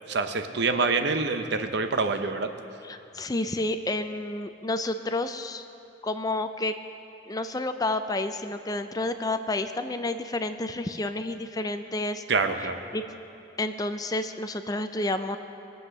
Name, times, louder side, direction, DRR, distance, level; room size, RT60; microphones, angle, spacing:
voice 1, 0.1-2.5 12.3-12.8, right 4 dB, 60° right, 7 dB, 0.8 m, -26 dB
voice 2, 2.8-5.6 6.0-6.7 7.3-12.2 12.6-13.0 13.6-15.4, left 2 dB, 20° left, 9 dB, 0.4 m, -30 dB
21.5 x 7.9 x 6.6 m, 2.8 s
head